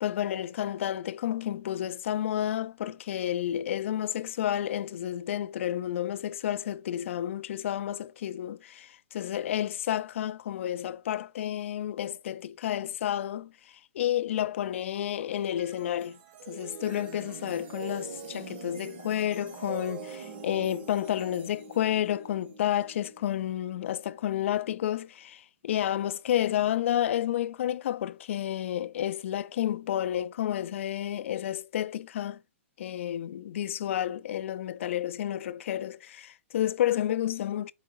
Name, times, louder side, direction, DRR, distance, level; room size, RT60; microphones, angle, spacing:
voice 1, 0.0-13.5 13.9-16.2 16.5-32.4 32.8-37.7, left 11 dB, 60° left, 0.4 m, -30 dB
sound 1, 15.3-24.6, right 5 dB, 45° right, 1.1 m, -44 dB
4.7 x 3.9 x 2.5 m
hypercardioid pair, 150°, 8 cm